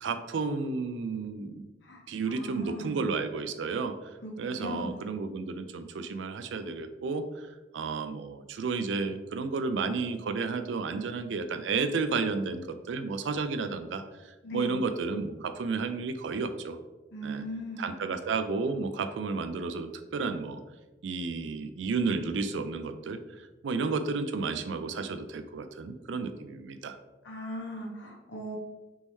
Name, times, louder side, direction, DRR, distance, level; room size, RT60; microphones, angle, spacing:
voice 1, 0.0-1.6 2.1-7.5 7.7-16.8 17.2-17.4 17.8-20.6 21.0-27.0, right 4 dB, 85° right, 9 dB, 0.4 m, -32 dB
voice 2, 1.8-3.0 4.2-5.0 14.4-14.8 17.1-18.0 27.2-28.6, equal, 80° left, 0 dB, 0.9 m, -38 dB
4.0 x 3.6 x 3.1 m, 1.1 s
head